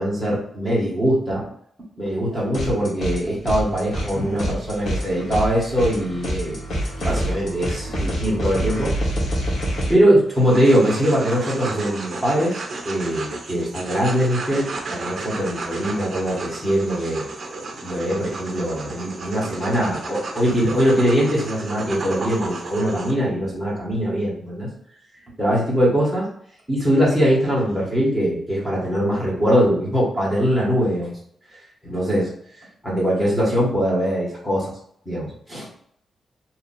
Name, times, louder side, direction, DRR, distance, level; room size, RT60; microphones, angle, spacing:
voice 1, 0.0-1.4 2.0-6.5 7.0-8.9 9.9-12.6 12.8-24.7 25.4-26.3 26.7-31.1 31.8-32.3 32.8-34.7 35.0-35.7, equal, ahead, -6 dB, 1.5 m, -22 dB
sound 1, 2.5-3.2 3.5-9.9, equal, 60° left, 1.1 m, -26 dB
sound 2, 10.3-23.1, right 3 dB, 40° right, 0.6 m, -33 dB
2.8 x 2.8 x 4.1 m, 0.66 s
wide cardioid pair, 165°, 0 cm